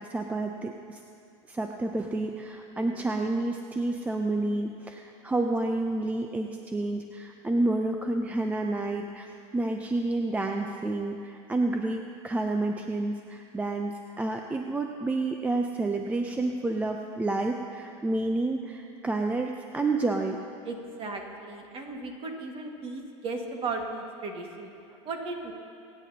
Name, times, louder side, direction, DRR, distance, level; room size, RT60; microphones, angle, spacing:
voice 1, 0.1-1.0 1.5-20.4, right 2 dB, 10° right, 3 dB, 0.5 m, -29 dB
voice 2, 20.6-24.7 25.0-25.5, right 3 dB, 35° right, 2 dB, 1.8 m, -36 dB
24.0 x 9.3 x 2.8 m, 2.6 s
supercardioid pair, 120°, 16 cm